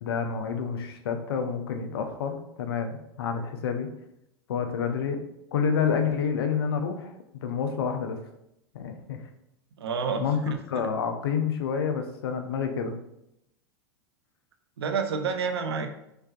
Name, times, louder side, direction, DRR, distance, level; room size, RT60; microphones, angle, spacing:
voice 1, 0.0-3.9 4.5-5.2 5.5-8.2 8.7-9.2 10.2-12.9, left 6 dB, 70° left, 6 dB, 0.6 m, -29 dB
voice 2, 9.8-10.2 10.7-10.9 14.8-15.9, right 5 dB, 80° right, 7 dB, 0.5 m, -29 dB
3.7 x 3.2 x 2.4 m, 0.82 s
hypercardioid pair, 95°, 13 cm